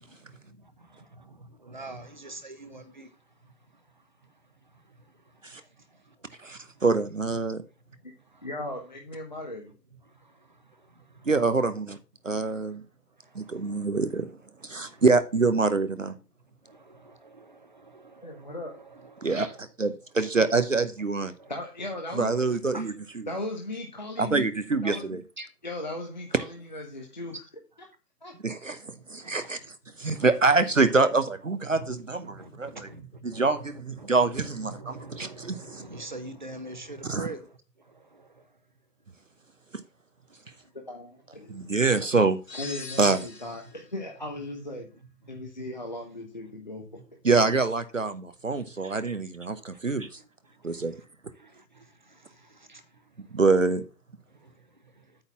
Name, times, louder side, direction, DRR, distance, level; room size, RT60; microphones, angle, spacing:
voice 1, 1.6-3.1 16.7-19.6 20.2-20.9 21.4-21.5 22.0-22.8 25.4-25.5 30.1-30.3 31.7-32.5 32.8-33.7 34.0-37.4 51.4-51.5 52.7-52.8, right 2 dB, 30° right, 1.1 m, -44 dB
voice 2, 6.4-7.6 11.3-12.0 12.2-12.8 13.3-14.3 14.6-16.2 19.2-21.3 22.1-22.9 24.2-24.9 28.4-29.6 30.0-32.7 33.2-35.8 37.1-37.3 39.7-39.8 41.5-42.4 43.0-43.2 47.2-50.1 50.6-50.9 53.3-53.8, right 3 dB, 50° right, 0.8 m, -25 dB
voice 3, 8.4-9.7 18.2-18.7 21.5-22.3 22.7-22.8 23.3-24.5 24.8-25.0 25.6-27.4 28.2-28.3 40.9-41.6 42.5-44.9 45.3-46.8, left 2 dB, 30° left, 0.9 m, -37 dB
sound 1, 42.5-43.9, left 3 dB, 85° left, 1.5 m, -41 dB
8.8 x 4.0 x 7.2 m
figure-of-eight pair, 155°, 49 cm